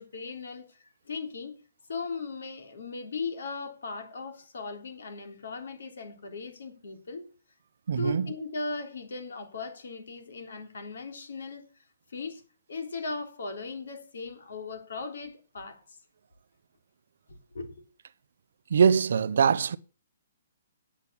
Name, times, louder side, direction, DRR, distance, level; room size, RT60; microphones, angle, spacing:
voice 1, 0.0-1.5 1.9-7.2 8.0-11.6 12.1-12.4 12.7-16.0 17.3-17.7, left 3 dB, 70° left, 3.4 m, -38 dB
voice 2, 7.9-8.3 18.7-19.8, right 6 dB, 55° right, 0.6 m, -23 dB
10.0 x 8.2 x 7.0 m
hypercardioid pair, 180°, 0 cm